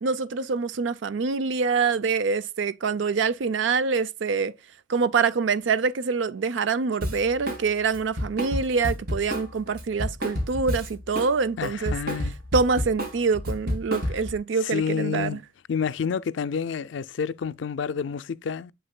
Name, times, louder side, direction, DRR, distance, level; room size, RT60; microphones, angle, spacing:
voice 1, 0.0-4.5 4.9-11.9 12.5-15.4, right 5 dB, 75° right, 0.5 m, -25 dB
Drum kit, 7.0-7.6 7.9-11.3 11.6-14.4, equal, 55° right, 2.6 m, -30 dB
voice 2, 11.6-12.4 14.6-15.4 15.7-18.7, left 6 dB, 75° left, 0.4 m, -29 dB
7.5 x 6.6 x 2.2 m
head